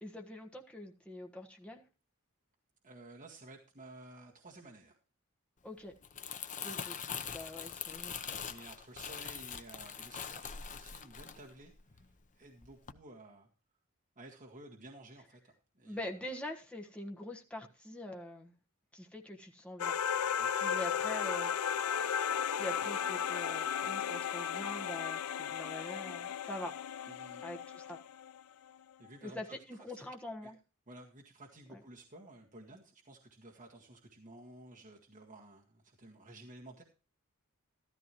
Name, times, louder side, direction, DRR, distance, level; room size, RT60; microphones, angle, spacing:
voice 1, 0.0-1.8 5.6-5.9 6.6-7.0 7.3-8.4 15.9-18.5 18.9-20.0 20.5-21.5 22.4-26.8 27.4-28.0 29.2-30.5 31.7-31.8, left 1 dB, 5° left, 1 dB, 1.3 m, -44 dB
voice 2, 2.8-5.0 8.5-12.1 12.3-13.5 14.2-16.4 20.4-20.5 27.1-27.5 29.0-30.0 30.4-30.5 30.9-36.8, right 2 dB, 35° right, -2 dB, 1.9 m, -54 dB
Crumpling crinkling, 5.9-12.3 12.6-12.9, left 7 dB, 35° left, 0.8 m, -43 dB
sound 1, 19.8-28.4, left 8 dB, 75° left, 0.5 m, -35 dB
13.5 x 13.5 x 3.1 m, 0.35 s
head